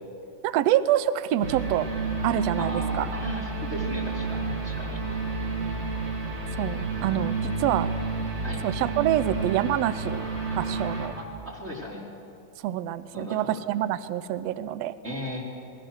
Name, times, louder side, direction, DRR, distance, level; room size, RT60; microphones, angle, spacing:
voice 1, 0.4-1.9 2.2-3.1 6.6-7.9 8.6-10.3 10.5-11.1 12.6-14.9, right 12 dB, 85° right, 14 dB, 1.5 m, -26 dB
sound 1, 1.4-11.1, right 4 dB, 50° right, 4.0 m, -30 dB
voice 2, 2.6-5.0 8.4-8.6 11.1-12.0 13.1-13.6 15.0-15.4, left 1 dB, 20° right, -2 dB, 3.8 m, -36 dB
26.0 x 21.0 x 6.3 m, 2.6 s
omnidirectional pair, 3.8 m